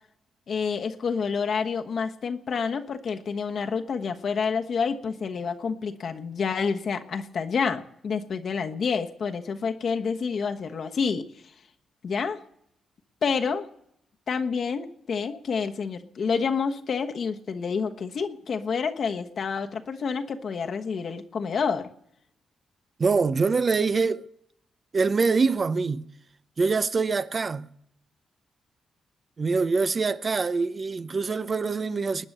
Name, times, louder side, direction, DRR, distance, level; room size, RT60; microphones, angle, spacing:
voice 1, 0.5-11.2 12.0-12.4 13.2-13.7 14.3-21.9, left 5 dB, 60° left, 1.2 m, -28 dB
voice 2, 23.0-24.2 24.9-26.1 26.6-27.7 29.4-32.3, right 4 dB, 40° right, 0.6 m, -24 dB
20.0 x 9.8 x 6.7 m
cardioid pair, 85°, 0 cm